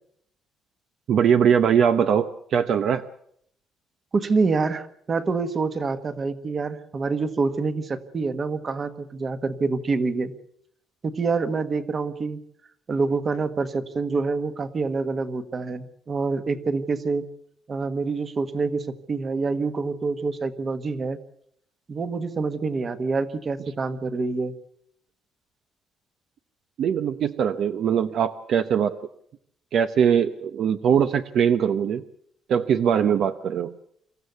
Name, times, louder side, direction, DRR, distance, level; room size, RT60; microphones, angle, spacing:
voice 1, 1.1-3.1 26.8-29.0 29.7-32.0 32.5-33.7, right 8 dB, 55° right, 10 dB, 0.8 m, -21 dB
voice 2, 4.1-10.3 11.0-12.4 12.9-17.2 17.7-21.2 21.9-24.5, right 4 dB, 30° right, 11 dB, 1.4 m, -26 dB
26.0 x 14.5 x 8.2 m, 0.70 s
cardioid pair, 170°, 0 cm